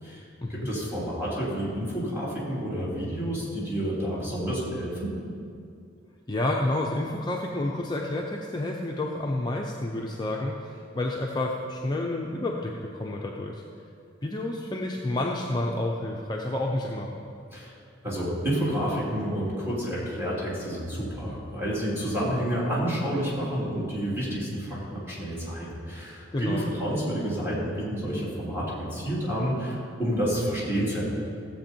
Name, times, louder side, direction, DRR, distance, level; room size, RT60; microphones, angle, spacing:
voice 1, 0.0-5.1 17.5-17.8 18.0-31.1, equal, 10° right, -7 dB, 3.3 m, -29 dB
voice 2, 6.3-13.6 14.2-17.1 26.3-26.7, left 1 dB, 20° left, -1 dB, 0.7 m, -29 dB
15.0 x 7.7 x 4.5 m, 2.4 s
head